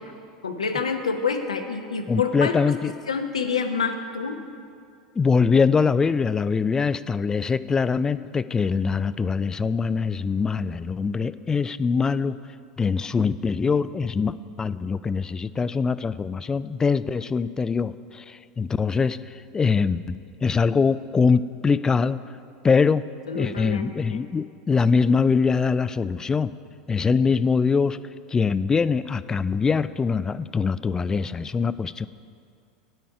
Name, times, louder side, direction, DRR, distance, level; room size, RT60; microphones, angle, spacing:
voice 1, 0.4-2.6 3.1-4.4 23.3-24.2, left 5 dB, 90° left, 6 dB, 0.8 m, -27 dB
voice 2, 2.1-2.9 5.2-12.4 12.8-19.2 19.5-22.2 22.6-23.0 23.3-26.5 26.9-28.0 28.3-32.1, left 5 dB, 20° left, 16 dB, 0.3 m, -23 dB
12.5 x 9.1 x 4.7 m, 2.3 s
hypercardioid pair, 85°, 3 cm